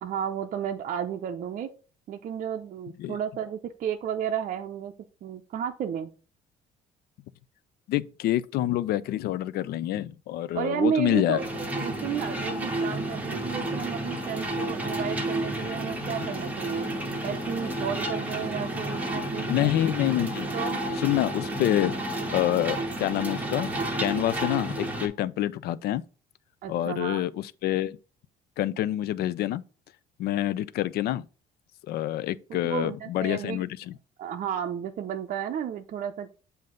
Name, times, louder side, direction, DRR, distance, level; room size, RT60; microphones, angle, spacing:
voice 1, 0.0-1.7 2.1-4.9 5.2-6.1 10.5-11.5 11.8-16.9 17.2-19.7 20.5-20.8 26.6-27.2 32.5-33.6 34.2-36.3, right 8 dB, 50° right, 0.6 m, -32 dB
voice 2, 7.9-11.4 19.5-20.5 21.0-21.9 22.3-23.7 24.0-26.0 26.7-28.0 28.6-29.6 30.2-31.2 31.9-33.9, left 13 dB, 70° left, 0.4 m, -27 dB
sound 1, 11.4-25.1, right 1 dB, 10° right, 1.3 m, -31 dB
7.5 x 2.7 x 5.0 m
cardioid pair, 110°, 17 cm